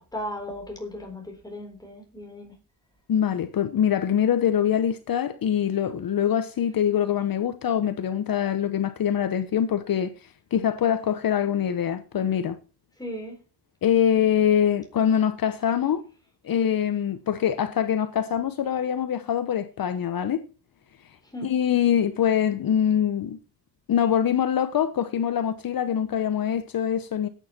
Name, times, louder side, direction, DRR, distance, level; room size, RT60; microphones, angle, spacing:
voice 1, 0.0-2.6 13.0-13.4 21.2-21.5, left 1 dB, 10° left, 4.0 m, -36 dB
voice 2, 3.1-10.1 10.5-12.6 13.8-16.0 16.4-20.4 21.4-23.4 23.9-27.3, left 9 dB, 60° left, 0.9 m, -24 dB
13.5 x 9.2 x 4.3 m
wide cardioid pair, 130°, 39 cm